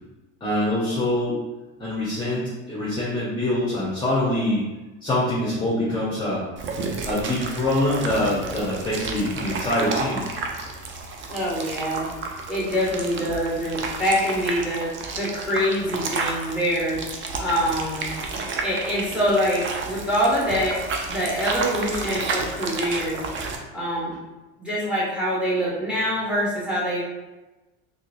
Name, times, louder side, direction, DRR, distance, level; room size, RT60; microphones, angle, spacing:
voice 1, 0.4-1.4 1.8-4.7 5.0-6.4 7.0-10.2, left 1 dB, 15° left, -7 dB, 0.9 m, -24 dB
sound 1, 6.6-23.6, right 4 dB, 35° right, 0.5 m, -31 dB
voice 2, 11.3-12.1 12.5-17.0 17.4-18.1 18.6-20.8 21.1-23.2 23.7-24.1 24.6-27.0, equal, 5° right, -7 dB, 1.4 m, -25 dB
3.2 x 2.7 x 2.6 m, 1.1 s
hypercardioid pair, 90°, 35 cm